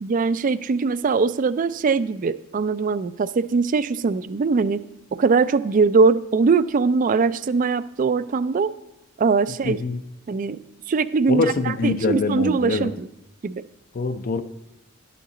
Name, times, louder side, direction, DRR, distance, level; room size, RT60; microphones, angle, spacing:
voice 1, 0.0-4.8 5.1-8.7 9.2-9.8 10.3-10.6 10.9-13.1 13.4-13.6, right 4 dB, 40° right, 15 dB, 0.3 m, -21 dB
voice 2, 9.6-10.0 11.3-12.9 13.9-14.4, left 3 dB, 45° left, 10 dB, 0.5 m, -24 dB
12.0 x 8.5 x 3.8 m, 0.90 s
head